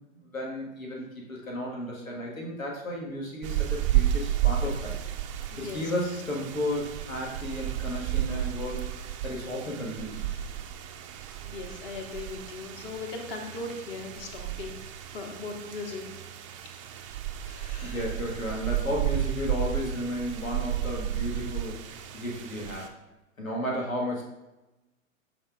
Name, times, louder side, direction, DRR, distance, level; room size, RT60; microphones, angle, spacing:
voice 1, 0.2-4.9 5.6-8.9 9.2-10.3 17.8-22.9 23.4-24.2, left 1 dB, 80° left, -2 dB, 1.6 m, -33 dB
sound 1, 3.4-22.9, right 12 dB, 25° right, 0.4 m, -32 dB
voice 2, 5.5-6.0 10.3-10.4 11.4-16.0 17.4-18.1, left 3 dB, 40° left, 3 dB, 1.2 m, -39 dB
11.0 x 3.7 x 2.4 m, 1.0 s
figure-of-eight pair, 105°, 40 cm